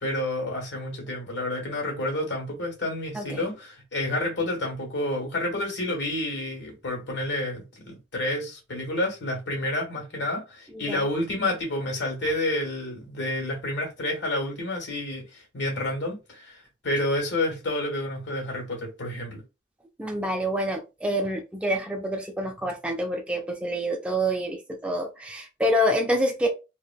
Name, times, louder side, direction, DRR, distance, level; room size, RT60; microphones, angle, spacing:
voice 1, 0.0-19.4, left 1 dB, 75° left, 1.3 m, -29 dB
voice 2, 3.1-3.5 10.7-11.0 20.0-26.5, equal, 5° right, 0.4 m, -27 dB
3.2 x 2.2 x 2.2 m
head